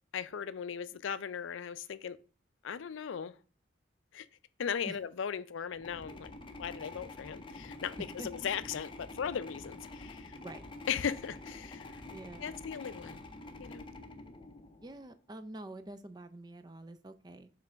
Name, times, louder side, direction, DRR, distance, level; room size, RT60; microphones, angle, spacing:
voice 1, 0.1-2.2 2.6-3.3 4.1-4.3 4.6-6.3 6.6-8.0 8.2-10.4 10.9-12.0 12.4-13.2 13.6-13.9, left 7 dB, 80° left, 0.4 m, -37 dB
sound 1, 5.7-15.1, left 2 dB, 25° left, 0.6 m, -47 dB
voice 2, 12.1-12.6 14.8-17.5, right 1 dB, 20° right, 0.4 m, -46 dB
5.8 x 3.3 x 5.0 m
head